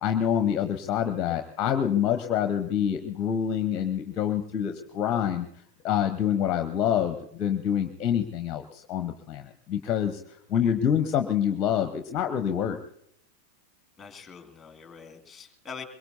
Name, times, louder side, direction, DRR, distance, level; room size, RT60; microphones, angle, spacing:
voice 1, 0.0-5.5 5.8-10.2 10.5-12.8, left 9 dB, 35° left, 8 dB, 1.0 m, -26 dB
voice 2, 14.0-15.8, left 6 dB, 15° left, 5 dB, 2.3 m, -44 dB
23.5 x 22.0 x 2.7 m, 0.71 s
figure-of-eight pair, 90°, 0 cm